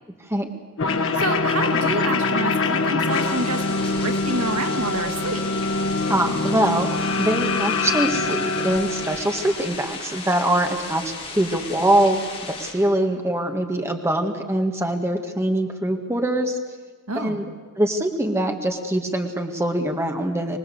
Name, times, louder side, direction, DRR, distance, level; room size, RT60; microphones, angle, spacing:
sound 1, 0.8-9.8, left 3 dB, 65° left, 1.5 m, -24 dB
voice 1, 1.2-5.4 17.1-17.4, right 2 dB, 75° right, 4 dB, 2.2 m, -28 dB
sound 2, 3.1-12.7, left 4 dB, 25° left, 5.9 m, -36 dB
voice 2, 6.1-6.9 7.2-16.6 17.2-17.4 17.8-20.6, right 1 dB, 10° right, 4 dB, 1.8 m, -23 dB
25.5 x 19.5 x 8.0 m, 1.4 s
head